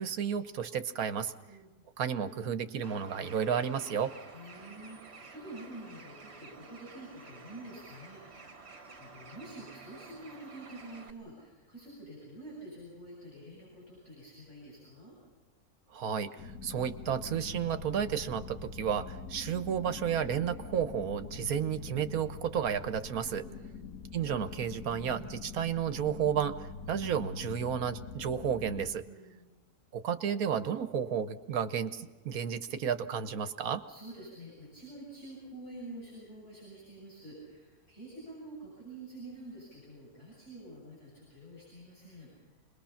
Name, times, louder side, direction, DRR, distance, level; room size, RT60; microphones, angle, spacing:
voice 1, 0.0-1.3 2.0-4.1 15.9-23.4 24.1-29.0 29.9-33.8, right 8 dB, 70° right, 11 dB, 1.4 m, -32 dB
Bird, 2.8-11.1, right 4 dB, 45° right, 1.9 m, -51 dB
voice 2, 4.3-8.5 9.0-15.2 23.4-24.1 29.0-29.6 33.9-42.3, right 1 dB, 50° left, -7 dB, 8.3 m, -48 dB
sound 1, 16.4-28.9, left 5 dB, 70° left, 1.9 m, -44 dB
27.0 x 21.0 x 5.8 m, 1.3 s
omnidirectional pair, 1.6 m